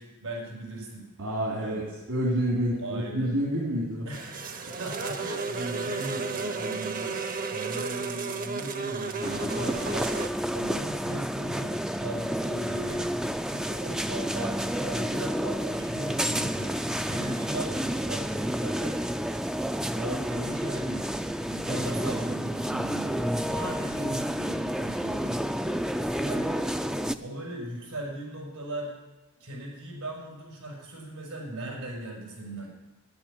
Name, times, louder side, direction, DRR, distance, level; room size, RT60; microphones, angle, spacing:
voice 1, 0.0-1.1 1.6-1.8 2.8-3.3 4.1-13.1 13.5-19.0 19.9-21.0 21.5-25.4 26.2-26.5 27.2-28.9 29.4-32.7, right 1 dB, 90° right, -1 dB, 5.5 m, -38 dB
voice 2, 1.2-4.1, equal, 75° right, -3 dB, 3.0 m, -28 dB
sound 1, 4.1-10.3, right 4 dB, 40° right, 0.8 m, -33 dB
sound 2, 9.2-27.1, equal, 5° right, 0.4 m, -30 dB
10.5 x 10.0 x 8.7 m, 1.1 s
head